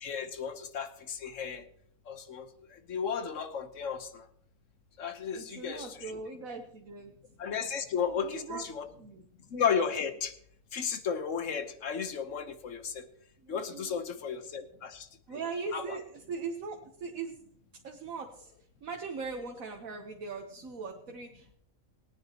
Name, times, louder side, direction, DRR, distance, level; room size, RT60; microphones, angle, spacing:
voice 1, 0.0-1.6 2.1-2.5 2.9-4.2 5.0-6.1 7.4-8.9 9.5-10.3 10.7-13.0 13.5-15.1 15.7-16.0, left 7 dB, 65° left, 9 dB, 1.3 m, -34 dB
voice 2, 5.3-7.1 7.9-8.6 9.0-9.2 13.4-14.0 15.3-17.4 17.8-18.5 18.8-21.6, right 4 dB, 85° right, 2 dB, 1.5 m, -40 dB
21.0 x 9.4 x 2.9 m, 0.67 s
omnidirectional pair, 1.4 m